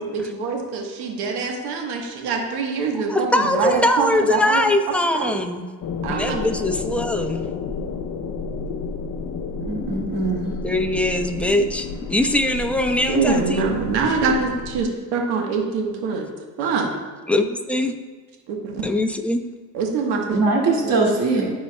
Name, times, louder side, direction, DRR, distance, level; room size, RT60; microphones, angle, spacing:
voice 1, 0.0-4.7 5.1-5.4 6.0-6.4 13.1-16.3 16.6-16.9 18.5-18.8 19.7-20.4 20.8-20.9, right 4 dB, 90° right, 1 dB, 1.3 m, -24 dB
voice 2, 3.1-5.7 6.1-7.5 10.1-10.2 10.6-13.6 17.3-17.9 18.8-19.4, left 1 dB, 5° left, 5 dB, 0.8 m, -22 dB
sound 1, 5.8-14.8, left 4 dB, 55° left, 0.7 m, -31 dB
voice 3, 9.6-10.5 20.3-21.5, right 3 dB, 60° right, -2 dB, 2.2 m, -21 dB
13.5 x 4.6 x 2.2 m, 1.4 s
supercardioid pair, 65°, 39 cm